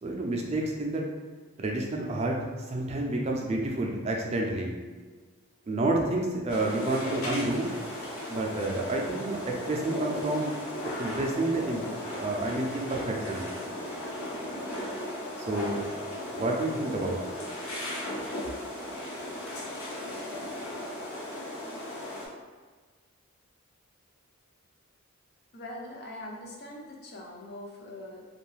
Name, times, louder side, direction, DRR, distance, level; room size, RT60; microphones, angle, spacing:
voice 1, 0.0-1.0 1.6-2.4 2.7-4.7 5.7-7.7 8.3-10.5 10.8-11.8 12.2-13.4 15.5-15.8 16.3-17.2, right 2 dB, 30° right, 0 dB, 0.3 m, -29 dB
sound 1, 6.5-22.3, left 1 dB, 80° left, 0.7 m, -36 dB
voice 2, 25.5-28.2, left 1 dB, 45° left, -1 dB, 0.5 m, -42 dB
2.6 x 2.3 x 3.1 m, 1.4 s
head